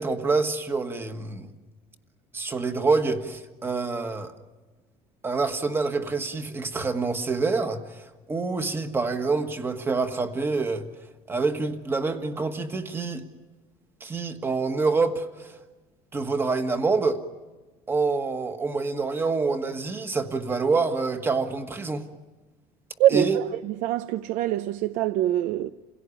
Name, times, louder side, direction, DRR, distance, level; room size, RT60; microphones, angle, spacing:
voice 1, 0.0-1.5 2.3-4.3 5.2-10.8 11.3-13.2 14.0-15.6 16.1-17.2 17.9-22.1 23.1-23.4, right 4 dB, 20° right, 1.6 m, -26 dB
voice 2, 23.0-25.7, right 13 dB, 75° right, 0.7 m, -24 dB
28.5 x 17.0 x 10.0 m
cardioid pair, 155°, 13 cm